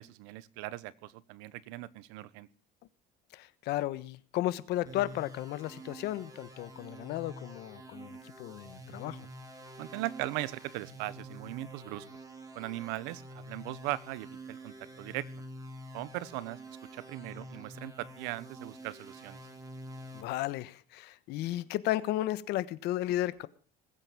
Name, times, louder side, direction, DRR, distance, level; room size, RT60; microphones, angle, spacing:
voice 1, 0.0-2.5 9.8-12.0 12.5-15.3 15.9-16.6 16.9-19.4, right 17 dB, 90° right, 1.1 m, -39 dB
voice 2, 3.3-9.2 20.1-23.5, left 15 dB, 70° left, 1.3 m, -34 dB
sound 1, 4.9-20.2, right 1 dB, 20° right, 4.1 m, -48 dB
21.0 x 9.0 x 7.4 m
cardioid pair, 125°, 18 cm